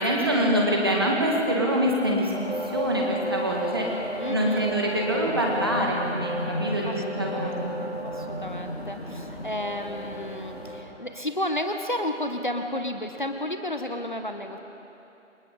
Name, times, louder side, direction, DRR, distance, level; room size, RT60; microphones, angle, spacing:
voice 1, 0.0-2.3 2.7-3.9 4.3-7.8, equal, 20° right, -2 dB, 1.9 m, -25 dB
sound 1, 2.3-10.8, equal, 55° left, 5.1 m, -33 dB
voice 2, 4.2-4.7 6.8-14.6, left 1 dB, 40° left, 6 dB, 1.1 m, -32 dB
28.5 x 25.0 x 3.8 m, 3.0 s
figure-of-eight pair, 165°, 37 cm